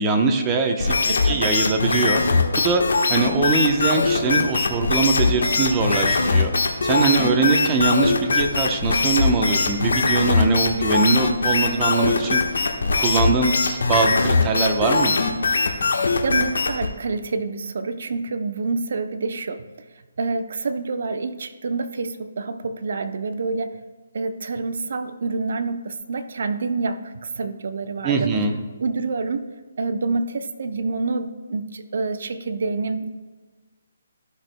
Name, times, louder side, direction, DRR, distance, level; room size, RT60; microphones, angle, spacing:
voice 1, 0.0-2.2 2.6-2.8 3.1-12.7 13.0-15.1 28.0-28.5, right 4 dB, 20° right, 4 dB, 0.8 m, -22 dB
sound 1, 0.8-16.9, left 4 dB, 80° left, 1.3 m, -21 dB
voice 2, 1.1-1.6 16.2-19.7 20.2-23.8 24.1-28.3 28.8-29.5 29.8-33.1, right 3 dB, 65° right, 10 dB, 0.6 m, -27 dB
15.0 x 6.1 x 2.2 m, 1.3 s
hypercardioid pair, 155°, 0 cm